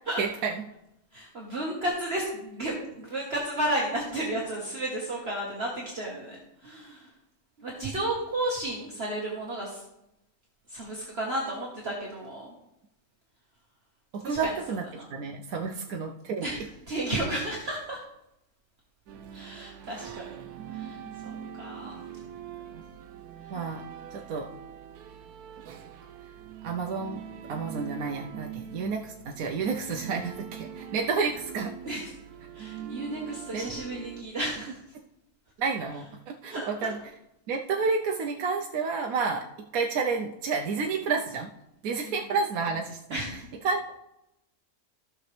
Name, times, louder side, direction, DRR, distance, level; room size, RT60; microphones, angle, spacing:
voice 1, 0.2-0.5 14.1-14.8 15.1-16.5 22.7-22.8 23.5-23.8 24.1-24.5 26.6-27.2 27.5-31.7 33.5-33.6 35.6-37.0 37.5-39.4 39.7-41.5 41.8-43.0 43.6-43.9, right 5 dB, 70° right, 1 dB, 1.2 m, -30 dB
voice 2, 1.1-7.1 7.6-9.8 10.7-12.5 14.2-15.1 15.6-15.9 16.4-18.0 19.3-20.3 20.7-22.0 23.4-23.7 31.8-32.0 32.5-34.8 36.4-36.9 42.0-42.3 43.1-43.5, right 1 dB, 45° right, -3 dB, 1.6 m, -33 dB
sound 1, 19.1-34.2, right 9 dB, 90° right, 1.3 m, -43 dB
15.5 x 6.1 x 3.3 m, 0.86 s
omnidirectional pair, 1.6 m